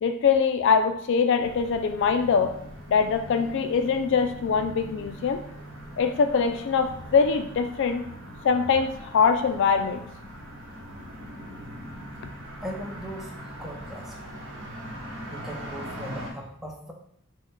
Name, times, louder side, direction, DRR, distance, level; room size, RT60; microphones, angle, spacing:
voice 1, 0.0-2.5 2.9-5.4 6.0-8.0 8.4-10.1, left 5 dB, 55° left, 8 dB, 0.3 m, -23 dB
sound 1, 1.4-16.3, equal, 60° right, 1.0 m, -41 dB
voice 2, 12.6-14.2 15.3-16.9, equal, ahead, 0 dB, 0.5 m, -38 dB
4.3 x 2.2 x 4.5 m, 0.71 s
head